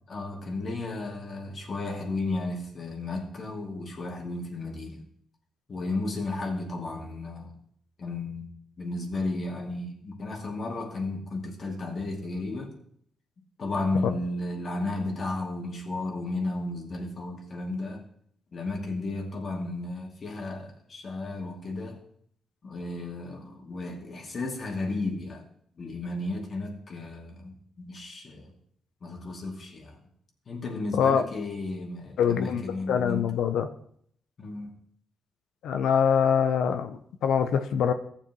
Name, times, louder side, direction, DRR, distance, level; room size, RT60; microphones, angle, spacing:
voice 1, 0.1-5.0 5.7-7.6 8.0-8.5 8.8-12.7 13.6-18.0 18.5-22.0 22.6-25.4 25.8-28.5 29.0-30.0 30.5-33.3 34.4-34.7, left 2 dB, 50° left, 2.5 m, -33 dB
voice 2, 32.2-32.6 32.9-33.7 35.6-37.9, left 7 dB, 75° left, 0.6 m, -24 dB
15.0 x 7.1 x 3.0 m
supercardioid pair, 50°, 0 cm